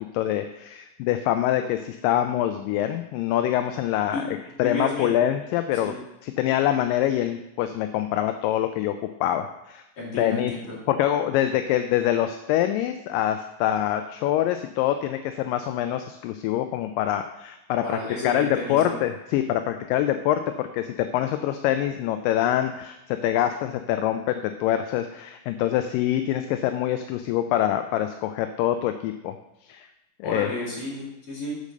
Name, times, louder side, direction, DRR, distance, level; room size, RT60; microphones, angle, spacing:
voice 1, 0.1-5.9 6.2-9.8 10.2-10.5 10.9-18.0 18.2-29.4 29.7-29.9 30.2-30.5, left 12 dB, 80° left, 8 dB, 2.1 m, -25 dB
voice 2, 4.1-5.2 5.8-5.9 10.0-10.8 17.8-19.0 30.2-31.6, left 2 dB, 40° left, -7 dB, 3.9 m, -32 dB
8.3 x 5.1 x 6.6 m, 0.91 s
omnidirectional pair, 4.2 m